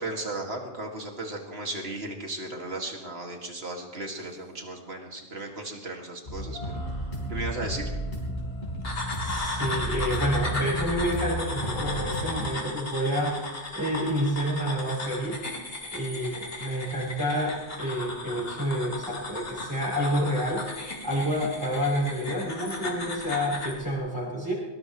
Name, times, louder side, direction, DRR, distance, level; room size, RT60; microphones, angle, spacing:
voice 1, 0.0-6.6 7.3-7.8, right 2 dB, 80° right, 1 dB, 2.5 m, -35 dB
sound 1, 6.3-12.4, equal, 50° left, 4.7 m, -33 dB
sound 2, 8.8-23.8, left 2 dB, 70° left, 2.7 m, -36 dB
voice 2, 9.2-13.4 13.7-15.4 15.9-20.6 21.0-24.5, equal, 20° right, -5 dB, 5.5 m, -29 dB
22.0 x 19.5 x 3.2 m, 1.2 s
omnidirectional pair, 1.0 m